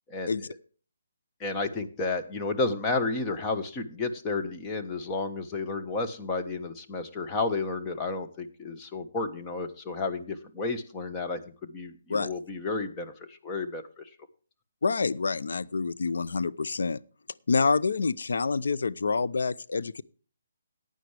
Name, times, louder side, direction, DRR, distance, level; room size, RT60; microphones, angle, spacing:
voice 1, 0.1-0.5 1.4-14.1, left 3 dB, 20° left, 1.2 m, -32 dB
voice 2, 14.8-17.0 17.5-20.0, left 4 dB, 75° left, 0.6 m, -27 dB
15.5 x 9.3 x 3.3 m
hypercardioid pair, 155°, 0 cm